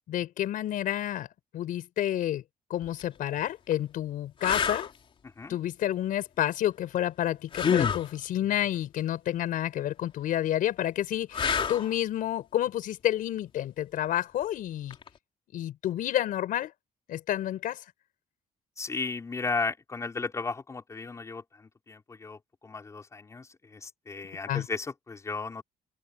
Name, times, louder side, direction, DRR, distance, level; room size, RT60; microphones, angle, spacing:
voice 1, 0.1-1.3 1.5-2.4 2.7-4.9 5.5-15.0 15.5-16.7 17.1-17.8 24.5-24.7, left 12 dB, 70° left, 4.9 m, -29 dB
sound 1, 2.8-3.0 3.7-3.8 4.4-4.9 7.5-8.1 11.3-11.9 14.9-15.1, left 7 dB, 35° left, 3.6 m, -27 dB
voice 2, 5.2-5.6 18.8-25.6, left 4 dB, 20° left, 4.4 m, -35 dB
open air
cardioid pair, 165°, 15 cm